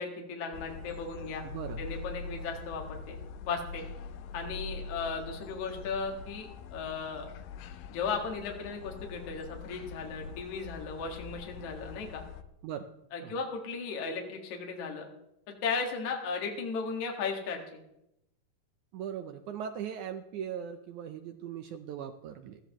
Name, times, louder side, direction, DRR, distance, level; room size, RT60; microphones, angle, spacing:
voice 1, 0.0-1.5 1.8-3.2 3.5-3.8 4.3-7.3 7.9-12.2 13.1-15.1 15.5-17.8, left 5 dB, 55° left, 2 dB, 3.0 m, -36 dB
sound 1, 0.5-12.4, left 4 dB, 80° left, 2.2 m, -44 dB
voice 2, 1.4-1.8 12.6-12.9 13.2-13.3 18.9-22.6, right 8 dB, 80° right, 7 dB, 1.8 m, -39 dB
20.0 x 13.5 x 3.1 m, 0.82 s
omnidirectional pair, 4.2 m